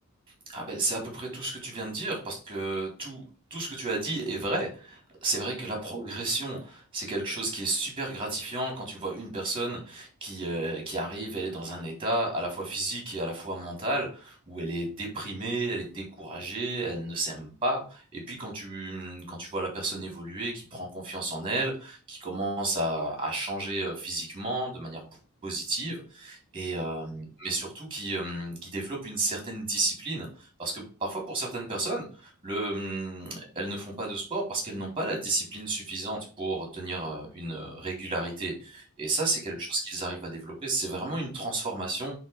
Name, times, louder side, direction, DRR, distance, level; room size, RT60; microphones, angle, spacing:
voice 1, 0.5-3.2 3.5-25.0 25.4-42.1, right 2 dB, 25° right, 0 dB, 4.0 m, -32 dB
9.4 x 4.4 x 3.6 m, 0.36 s
head